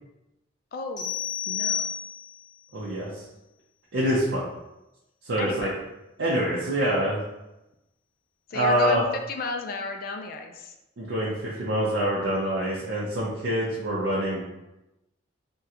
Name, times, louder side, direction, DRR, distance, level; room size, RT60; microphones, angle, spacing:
voice 1, 0.7-1.1 1.5-1.9 5.4-5.7 8.5-9.0 9.3-10.7, left 4 dB, 50° left, 4 dB, 0.3 m, -33 dB
sound 1, 1.0-2.5, left 8 dB, 65° left, 1.3 m, -30 dB
voice 2, 2.7-3.2 3.9-4.4 5.2-5.7 6.2-7.2 8.5-9.0 11.0-14.4, equal, 75° right, -6 dB, 0.6 m, -25 dB
3.6 x 2.2 x 2.8 m, 0.94 s
head